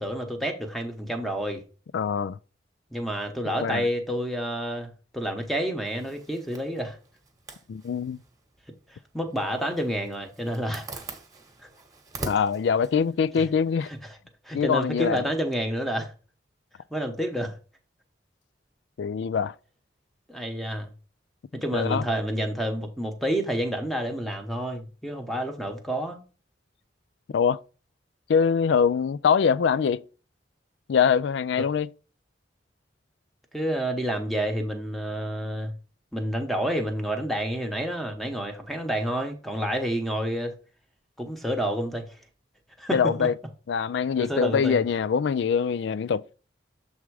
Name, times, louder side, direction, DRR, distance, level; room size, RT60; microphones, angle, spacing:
voice 1, 0.0-1.6 2.9-7.0 8.9-10.9 13.4-13.5 14.0-14.1 14.4-16.1 16.9-17.6 20.3-20.9 21.5-26.2 33.5-35.8 36.1-40.5 41.2-42.2 42.8-43.3 44.2-44.8, equal, ahead, 0.9 m, -29 dB
voice 2, 1.9-2.4 3.5-3.9 7.7-8.2 12.3-13.9 14.5-15.2 19.0-19.5 21.7-22.1 27.3-27.6 28.3-30.0 30.9-31.9 42.9-43.3 43.7-46.2, left 6 dB, 70° left, 0.3 m, -23 dB
Zipper (clothing), 5.8-14.0, right 2 dB, 20° right, 1.1 m, -44 dB
7.3 x 3.5 x 4.7 m
head